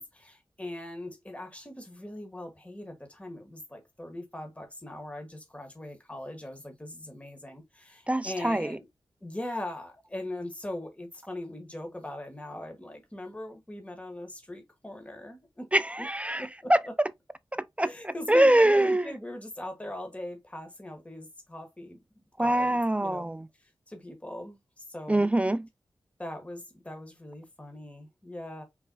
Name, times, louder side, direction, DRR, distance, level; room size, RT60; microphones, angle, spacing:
voice 1, 0.0-8.9 9.2-15.7 16.0-16.1 16.4-16.9 17.8-22.0 22.4-23.3 23.9-25.3 26.2-28.6, left 1 dB, 15° left, 1.5 m, -40 dB
voice 2, 8.1-8.7 15.7-17.1 17.5-19.1 22.4-23.5 25.1-25.7, right 1 dB, 15° right, 0.3 m, -24 dB
5.5 x 4.2 x 2.3 m
wide cardioid pair, 85°, 8 cm